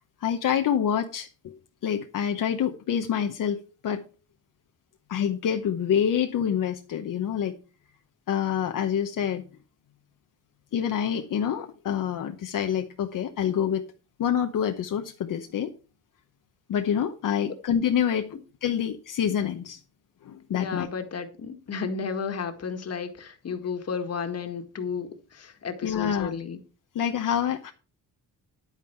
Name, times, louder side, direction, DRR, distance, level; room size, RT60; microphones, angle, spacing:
voice 1, 0.2-1.6 1.8-4.0 5.1-7.5 8.3-9.4 10.7-13.8 14.2-15.7 16.7-19.8 20.2-20.9 25.8-26.3 26.9-27.7, left 8 dB, 70° left, 1.0 m, -27 dB
voice 2, 20.5-26.6, left 5 dB, 45° left, 1.7 m, -33 dB
10.5 x 9.1 x 4.5 m
wide cardioid pair, 140°, 34 cm